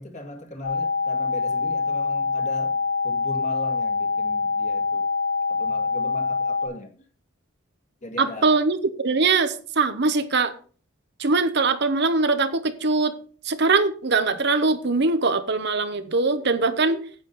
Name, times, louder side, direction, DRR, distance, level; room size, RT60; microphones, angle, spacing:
voice 1, 0.0-5.1 5.5-6.9 8.0-8.6, left 1 dB, 35° left, 4 dB, 2.0 m, -39 dB
sound 1, 0.6-6.7, left 4 dB, 80° left, 5.0 m, -25 dB
voice 2, 8.2-10.5 11.2-13.1 13.4-17.0, right 3 dB, 50° right, 10 dB, 0.9 m, -22 dB
10.0 x 8.3 x 4.1 m, 0.41 s
head